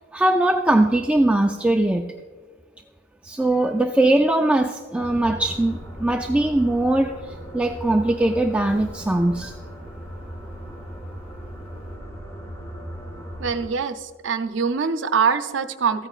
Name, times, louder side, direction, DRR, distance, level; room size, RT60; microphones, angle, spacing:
voice 1, 0.1-2.0 3.2-9.5, right 1 dB, 5° right, 3 dB, 0.3 m, -21 dB
sound 1, 5.0-13.7, equal, 15° left, 1.9 m, -37 dB
voice 2, 13.4-16.1, right 6 dB, 85° right, 10 dB, 0.6 m, -23 dB
14.0 x 8.9 x 2.4 m, 1.4 s
head